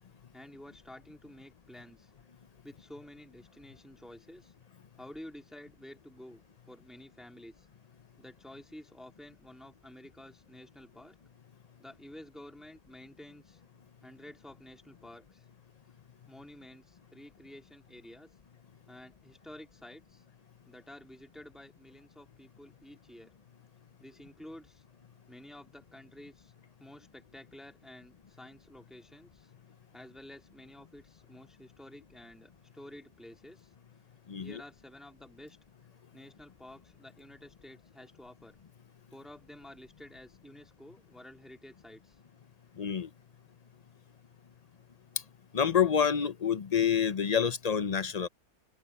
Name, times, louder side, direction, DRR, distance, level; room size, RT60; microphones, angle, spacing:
voice 1, 0.3-2.1 2.6-4.5 5.0-7.7 8.2-11.2 11.8-13.6 14.0-15.5 16.2-18.3 18.9-20.2 20.7-23.3 24.0-24.8 25.3-26.5 26.8-29.5 29.9-33.7 34.4-35.6 36.1-38.6 39.1-42.2, left 1 dB, ahead, 2.8 m, -51 dB
voice 2, 34.3-34.6 42.8-43.1 45.5-48.3, left 7 dB, 40° left, 0.7 m, -27 dB
open air
omnidirectional pair, 1.3 m